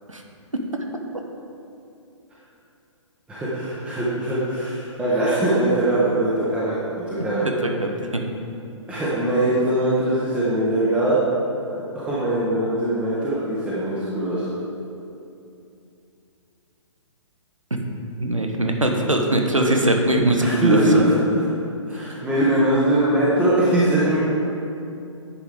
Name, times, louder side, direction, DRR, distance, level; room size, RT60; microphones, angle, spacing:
voice 1, 3.3-7.5 8.9-11.2 11.9-14.4 19.6-19.7 20.4-21.4 21.9-24.2, right 1 dB, 5° right, -9 dB, 1.2 m, -21 dB
voice 2, 7.6-8.2 18.2-21.1, right 1 dB, 90° right, 3 dB, 1.1 m, -21 dB
10.0 x 6.1 x 3.6 m, 2.7 s
figure-of-eight pair, 125°, 16 cm